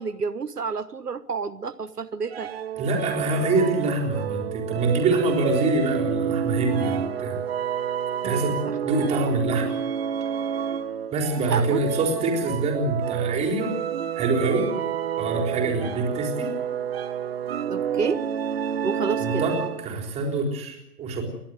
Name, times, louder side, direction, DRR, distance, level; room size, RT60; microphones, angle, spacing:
voice 1, 0.0-2.5 8.2-8.8 11.5-11.8 14.6-14.8 17.7-18.2 18.8-19.4, right 5 dB, 80° right, 13 dB, 1.1 m, -29 dB
sound 1, 2.3-20.0, right 9 dB, 40° right, 1.2 m, -29 dB
voice 2, 2.8-7.4 8.2-8.6 8.8-9.7 11.1-13.8 14.1-14.7 15.2-16.5 19.2-21.2, right 3 dB, 15° right, 2 dB, 4.0 m, -25 dB
29.5 x 12.0 x 7.9 m, 0.85 s
figure-of-eight pair, 130°, 47 cm